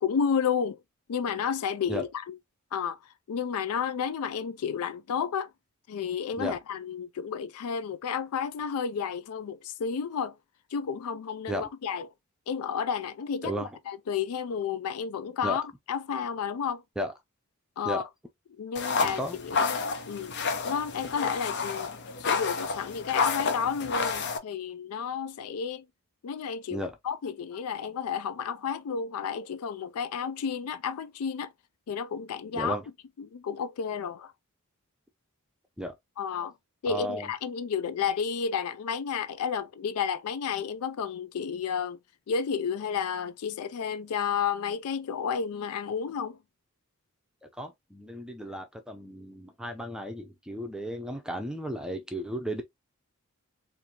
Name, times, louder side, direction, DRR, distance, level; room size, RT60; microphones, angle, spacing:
voice 1, 0.0-0.8 1.1-2.3 2.7-3.0 3.3-5.5 5.9-10.4 10.7-12.1 12.5-13.5 13.9-15.6 15.9-16.8 17.8-18.0 18.6-20.3 20.6-21.9 22.2-25.8 26.2-31.5 31.9-32.8 33.3-34.3 36.2-36.5 36.8-42.0 42.3-46.4, left 6 dB, 90° left, 0.4 m, -31 dB
voice 2, 13.4-13.8 15.4-15.6 17.0-17.1 17.8-18.0 19.0-19.4 26.7-27.0 32.5-32.9 35.8-35.9 36.9-37.3 47.4-52.6, equal, 5° right, 0.5 m, -34 dB
sound 1, 18.8-24.4, left 5 dB, 55° left, 0.7 m, -30 dB
4.3 x 2.6 x 2.8 m
head